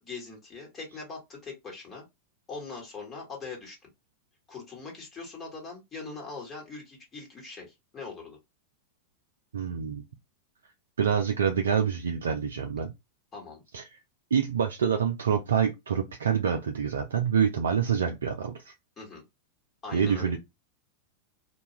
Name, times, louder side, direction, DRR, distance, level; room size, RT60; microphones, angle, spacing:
voice 1, 0.0-2.1 2.5-3.9 4.5-8.4 13.3-13.6 19.0-19.2 19.8-20.4, left 4 dB, 25° left, 1.3 m, -41 dB
voice 2, 9.5-10.0 11.0-12.9 13.7-13.8 14.3-18.7 19.9-20.4, right 7 dB, 80° right, 0.4 m, -26 dB
2.3 x 2.2 x 2.9 m
hypercardioid pair, 95°, 0 cm